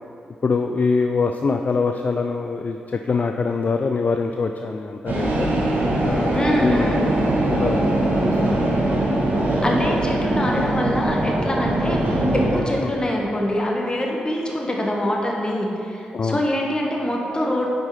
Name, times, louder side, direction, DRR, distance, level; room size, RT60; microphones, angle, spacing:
voice 1, 0.4-5.5 6.0-7.1 7.5-7.9 8.2-8.7 10.6-10.7 12.8-12.9 16.1-16.4, left 4 dB, 50° left, 5 dB, 0.3 m, -24 dB
sound 1, 5.1-12.6, right 1 dB, 65° right, 1.4 m, -21 dB
voice 2, 6.3-7.0 9.6-17.7, left 1 dB, 25° left, -1 dB, 1.4 m, -24 dB
7.0 x 4.9 x 4.3 m, 2.6 s
supercardioid pair, 45°, 4 cm